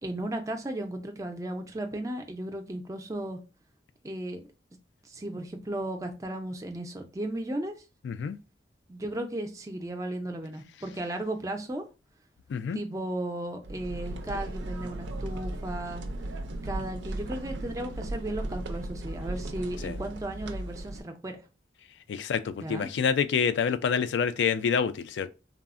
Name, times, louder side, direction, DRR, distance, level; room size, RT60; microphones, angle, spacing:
voice 1, 0.0-3.4 4.0-4.4 5.1-7.8 8.9-11.9 12.7-16.0 16.6-21.4 22.6-22.9, right 1 dB, 20° right, 0.4 m, -35 dB
voice 2, 8.0-8.4 12.5-12.8 19.8-20.0 22.1-25.3, left 6 dB, 80° left, 0.3 m, -27 dB
sound 1, 13.6-21.0, right 1 dB, 85° right, 0.4 m, -36 dB
3.5 x 2.0 x 2.4 m
head